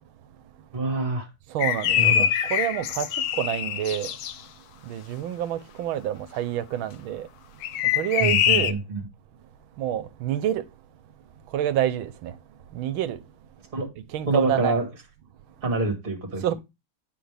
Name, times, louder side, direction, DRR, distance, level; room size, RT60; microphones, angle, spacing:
voice 1, 0.7-1.3 2.0-2.3 8.2-9.0 13.7-13.9 14.3-14.9 15.6-16.5, right 2 dB, 25° right, 1.9 m, -26 dB
voice 2, 1.5-2.0 2.5-3.1 3.4-4.1 4.9-7.3 8.0-8.7 9.8-10.6 11.5-12.3 12.7-13.2 14.1-14.7 16.4-16.5, right 11 dB, 80° right, 1.5 m, -27 dB
sound 1, 1.6-4.3 7.6-8.7, left 10 dB, 70° left, 0.9 m, -24 dB
10.0 x 5.8 x 3.4 m
omnidirectional pair, 2.2 m